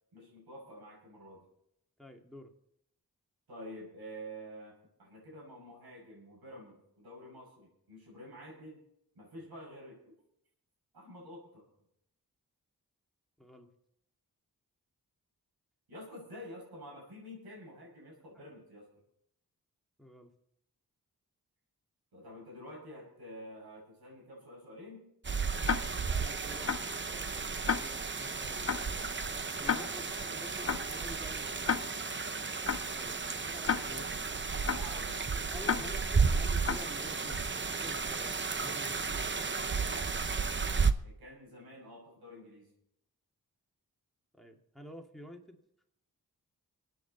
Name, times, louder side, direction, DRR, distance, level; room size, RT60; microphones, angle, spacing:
voice 1, 0.1-1.4 3.5-8.8 9.1-10.0 10.9-11.6 15.9-18.9 22.1-25.1 30.4-30.7 33.9-34.2 34.5-35.9 41.0-42.7, equal, 85° right, -2 dB, 6.2 m, -49 dB
voice 2, 2.0-2.5 13.4-13.7 18.3-18.4 20.0-20.3 26.1-29.1 29.6-31.9 32.9-34.0 35.5-39.3 44.3-45.6, equal, ahead, 2 dB, 2.4 m, -50 dB
sound 1, 25.2-40.9, right 5 dB, 30° right, 0.8 m, -33 dB
Tick-tock, 25.6-26.1 26.7-27.0 27.7-28.1 28.7-29.0 29.7-30.1 30.7-31.0 31.7-32.1 32.7-33.0 33.7-34.1 34.7-35.0 35.6-36.1 36.6-37.0, left 6 dB, 40° left, 0.6 m, -33 dB
25.5 x 9.2 x 4.1 m, 0.76 s
cardioid pair, 60°, 37 cm